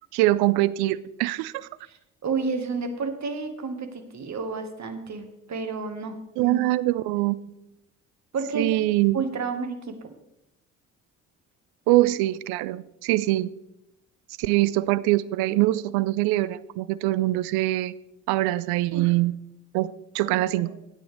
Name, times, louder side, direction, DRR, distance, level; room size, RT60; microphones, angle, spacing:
voice 1, 0.1-1.7 6.4-7.4 8.5-9.3 11.9-13.5 14.4-17.9 18.3-19.3 19.7-20.7, right 17 dB, 70° right, 19 dB, 0.5 m, -23 dB
voice 2, 1.8-6.6 8.3-8.7 9.1-10.1 18.9-19.1 20.3-20.8, right 4 dB, 45° right, 8 dB, 1.5 m, -31 dB
13.5 x 9.1 x 3.3 m, 0.86 s
hypercardioid pair, 45°, 40 cm